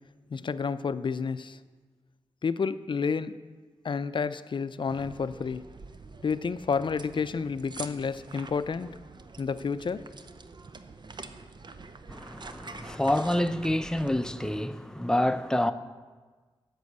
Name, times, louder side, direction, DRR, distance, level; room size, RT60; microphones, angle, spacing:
voice 1, 0.3-1.6 2.4-3.4 3.8-5.6 6.2-8.9 9.4-10.1, left 5 dB, 50° left, 0.5 m, -30 dB
sound 1, 4.9-14.6, right 3 dB, 45° right, 0.7 m, -46 dB
voice 2, 12.1-15.7, left 1 dB, 5° left, 0.6 m, -27 dB
8.2 x 6.3 x 8.1 m
cardioid pair, 45°, 11 cm